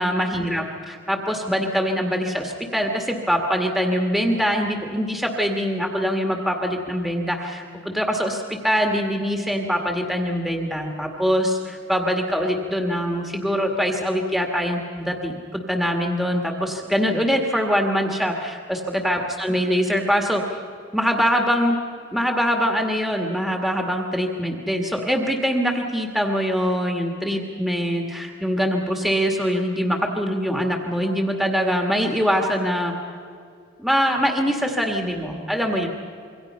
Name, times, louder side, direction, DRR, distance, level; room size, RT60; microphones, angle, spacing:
voice 1, 0.0-20.5 20.9-21.8 22.1-32.9 33.8-35.9, equal, ahead, 2 dB, 1.8 m, -23 dB
26.5 x 23.5 x 5.6 m, 2.3 s
head